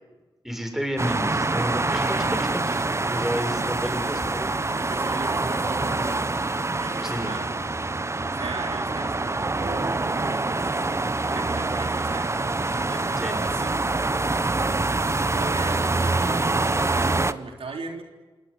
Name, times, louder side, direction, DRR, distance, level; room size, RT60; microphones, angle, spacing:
voice 1, 0.4-4.6 7.0-7.3 13.2-13.4, equal, 5° right, 5 dB, 6.8 m, -31 dB
sound 1, 1.0-17.3, right 2 dB, 30° right, 1.0 m, -25 dB
voice 2, 4.7-6.3 6.8-7.7 8.3-9.1 9.5-10.9 11.3-12.5 12.8-14.0 15.0-18.0, right 4 dB, 80° right, 3 dB, 3.5 m, -37 dB
27.0 x 20.0 x 9.9 m, 1.2 s
cardioid pair, 60°, 10 cm